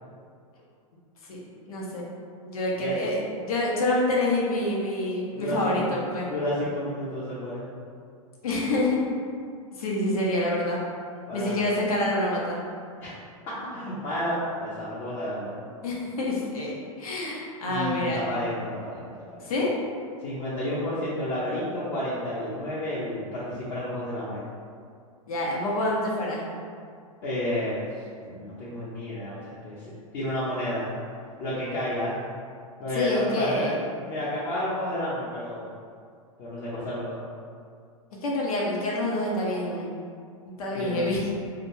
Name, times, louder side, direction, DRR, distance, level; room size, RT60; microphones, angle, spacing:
voice 1, 1.7-2.0 2.4-6.3 8.4-9.0 9.8-10.8 11.3-12.6 15.8-18.2 19.4-19.7 25.3-26.5 32.9-33.7 38.2-40.0 40.6-41.3, left 1 dB, 75° left, -4 dB, 0.8 m, -27 dB
voice 2, 5.3-6.0 6.2-7.6 11.3-11.6 13.0-13.1 13.5-15.6 17.7-19.1 20.2-24.4 27.2-27.8 28.3-30.9 31.4-32.2 32.8-33.7 34.0-35.7 36.4-37.2 40.7-41.0, left 1 dB, 45° left, -9 dB, 0.6 m, -31 dB
2.3 x 2.2 x 3.1 m, 2.3 s
hypercardioid pair, 110°, 19 cm